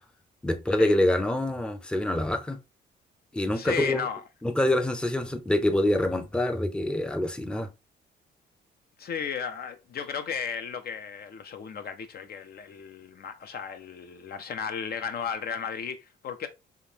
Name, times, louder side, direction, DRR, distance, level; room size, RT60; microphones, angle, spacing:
voice 1, 0.4-2.6 3.3-4.0 4.4-7.7, left 1 dB, 5° left, 0.5 m, -26 dB
voice 2, 3.5-4.2 9.0-16.5, left 7 dB, 50° left, 0.5 m, -34 dB
3.5 x 2.9 x 2.7 m
cardioid pair, 90°, 20 cm